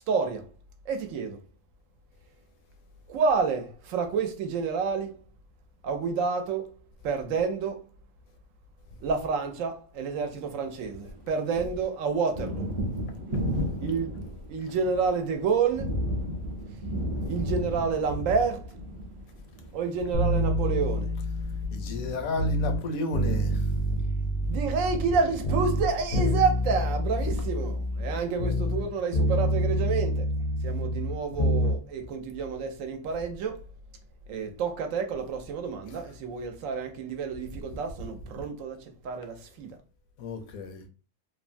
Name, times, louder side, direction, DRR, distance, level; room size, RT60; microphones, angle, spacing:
voice 1, 0.1-0.5 0.9-1.4 3.1-5.1 5.8-6.7 7.0-7.8 9.0-12.7 13.8-14.1 14.5-16.0 17.3-18.7 19.7-21.1 24.5-30.3 30.6-33.6 34.3-38.8 39.0-39.7, right 5 dB, 70° right, 0.9 m, -29 dB
Thunder, 10.1-11.3 11.6-26.8, equal, 35° right, 0.5 m, -35 dB
sound 1, 20.1-22.8 23.1-25.2 25.4-28.9 29.1-31.7 32.0-32.1, equal, 45° left, 0.5 m, -27 dB
voice 2, 21.7-23.7 40.2-40.8, left 3 dB, 75° left, 1.0 m, -33 dB
3.1 x 2.2 x 2.5 m
omnidirectional pair, 1.5 m